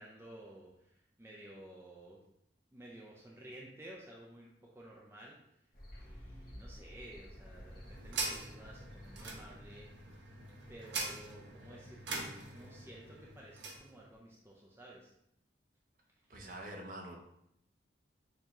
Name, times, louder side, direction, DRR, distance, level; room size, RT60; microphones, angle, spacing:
voice 1, 0.0-2.2 2.7-5.4 6.0-9.9 10.7-15.1, right 1 dB, 15° right, -3 dB, 0.4 m, -53 dB
sound 1, 5.7-10.7, equal, 50° left, 1.0 m, -53 dB
sound 2, 7.3-13.9, right 3 dB, 85° right, 0.8 m, -43 dB
voice 2, 16.3-17.2, right 1 dB, 45° right, 1 dB, 0.8 m, -45 dB
6.5 x 2.8 x 2.9 m, 0.78 s
head